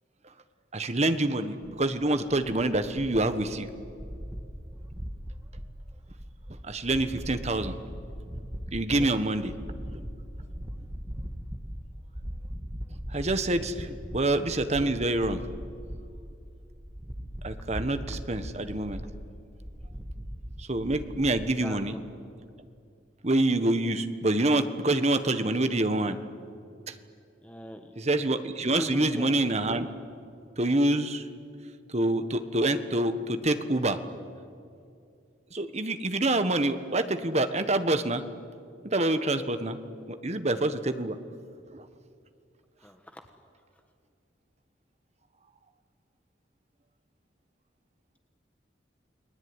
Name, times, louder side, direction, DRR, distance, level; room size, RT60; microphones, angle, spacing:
voice 1, 0.7-3.7 6.6-7.7 8.7-9.5 13.1-13.9 14.1-15.4 17.4-19.0 20.6-21.9 23.2-26.2 28.0-29.9 30.6-31.2 31.9-34.0 35.5-38.2 38.8-39.8 40.1-41.2 41.7-41.8, right 2 dB, 35° right, 10 dB, 1.4 m, -26 dB
sound 1, 1.6-21.5, equal, 20° right, 1.7 m, -40 dB
voice 2, 21.6-22.0 27.4-28.0 28.6-29.3 42.8-43.2, equal, 10° left, 5 dB, 1.4 m, -40 dB
29.5 x 20.5 x 9.8 m, 2.4 s
head